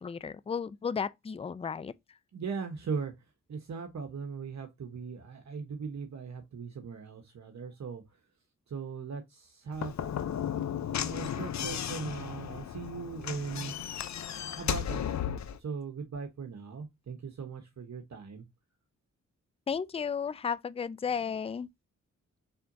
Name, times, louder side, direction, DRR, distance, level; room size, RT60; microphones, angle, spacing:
voice 1, 0.0-1.9 19.7-21.7, left 6 dB, 20° left, 0.4 m, -34 dB
voice 2, 2.3-3.1 3.5-8.0 8.7-10.0 10.7-13.7 14.5-15.3 15.6-18.4, right 5 dB, 55° right, 1.1 m, -39 dB
Slam / Knock, 9.7-15.6, left 9 dB, 60° left, 0.6 m, -35 dB
4.3 x 3.7 x 2.6 m
supercardioid pair, 45°, 32 cm